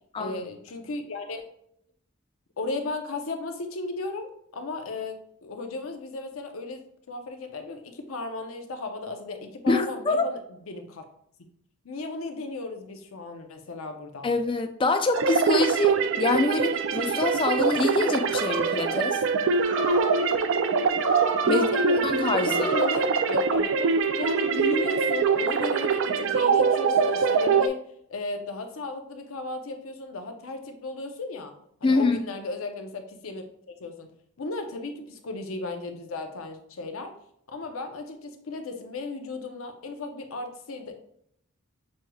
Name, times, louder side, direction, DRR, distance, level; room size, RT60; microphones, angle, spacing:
voice 1, 0.2-1.5 2.6-10.4 10.7-11.0 11.8-14.3 21.4-22.0 22.4-27.8 28.1-31.5 31.8-37.1 37.5-41.0, left 3 dB, 90° left, 0.6 m, -35 dB
voice 2, 9.7-10.3 14.2-19.2 21.5-21.7 22.0-22.7 31.8-32.2, left 3 dB, 25° left, 0.3 m, -25 dB
sound 1, 15.1-27.7, right 5 dB, 65° right, 0.3 m, -24 dB
Animal, 18.2-19.0 19.6-20.3 20.9-21.6 22.3-23.0, right 2 dB, 20° right, 1.4 m, -32 dB
6.2 x 3.0 x 2.3 m
head